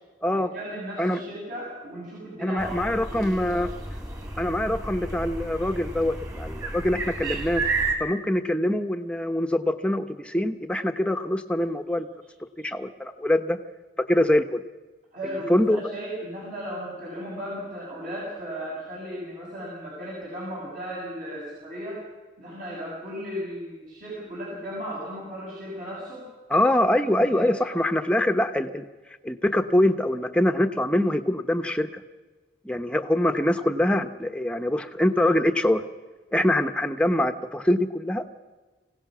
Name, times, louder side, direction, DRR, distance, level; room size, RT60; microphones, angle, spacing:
voice 1, 0.3-3.6 15.1-22.0 22.4-26.2 27.1-27.5, equal, 50° right, -5 dB, 6.9 m, -36 dB
voice 2, 2.4-3.7 4.4-7.6 8.0-12.1 12.6-13.6 14.1-14.6 15.5-15.8 26.5-28.8 29.2-31.9 32.6-35.8 36.3-38.2, left 1 dB, 5° left, 7 dB, 1.0 m, -24 dB
sound 1, 2.6-8.0, right 3 dB, 20° right, 3.0 m, -32 dB
26.0 x 17.0 x 6.2 m, 1.3 s
head